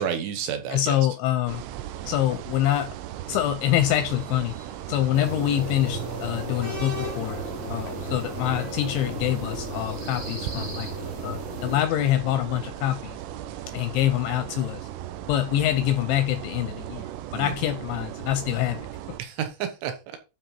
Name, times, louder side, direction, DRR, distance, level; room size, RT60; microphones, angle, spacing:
voice 1, 0.0-1.0 17.3-17.5 19.2-20.2, right 8 dB, 75° right, 3.4 m, -30 dB
voice 2, 0.7-1.6 2.1-2.9 3.3-4.6 4.9-7.4 7.7-13.2 13.7-14.9 15.3-18.9, left 12 dB, 85° left, 2.6 m, -25 dB
sound 1, 1.5-19.2, right 12 dB, 90° right, 3.4 m, -37 dB
sound 2, 3.8-9.1, left 3 dB, 20° left, 0.9 m, -42 dB
sound 3, 5.1-11.8, right 1 dB, 45° right, 0.8 m, -35 dB
11.5 x 4.2 x 4.4 m
omnidirectional pair, 5.9 m